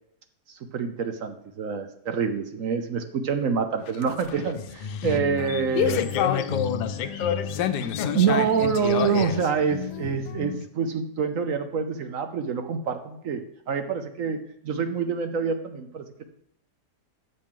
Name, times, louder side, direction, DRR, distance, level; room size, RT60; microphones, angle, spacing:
voice 1, 0.5-6.0 7.8-14.4 14.6-16.2, right 6 dB, 60° right, 8 dB, 1.0 m, -27 dB
sound 1, 3.8-10.6, left 9 dB, 85° left, 1.2 m, -29 dB
voice 2, 4.5-5.3 5.8-8.2, left 6 dB, 65° left, 9 dB, 0.4 m, -30 dB
12.0 x 6.6 x 3.8 m, 0.74 s
omnidirectional pair, 1.8 m